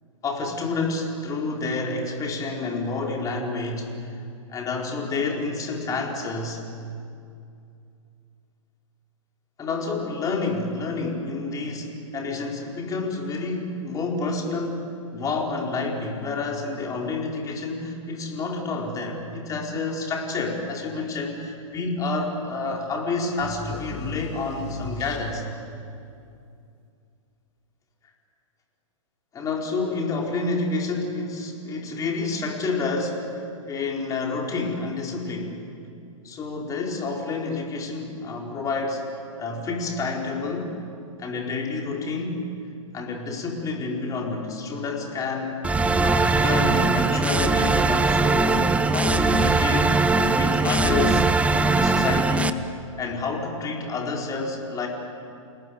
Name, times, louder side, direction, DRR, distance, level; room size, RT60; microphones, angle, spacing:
voice 1, 0.2-4.2 4.5-6.6 9.6-14.9 15.1-25.4 29.3-35.6 36.2-39.0 39.4-40.8 41.2-42.5 42.9-45.6 45.9-48.6 48.9-50.0 50.3-51.3 51.7-52.6 53.0-54.9, left 3 dB, 20° left, 0 dB, 4.3 m, -29 dB
sound 1, 23.4-25.7, left 2 dB, 35° left, 2.8 m, -35 dB
sound 2, 45.6-52.5, right 3 dB, 5° right, 0.8 m, -20 dB
28.5 x 18.5 x 9.4 m, 2.5 s
hypercardioid pair, 125°, 17 cm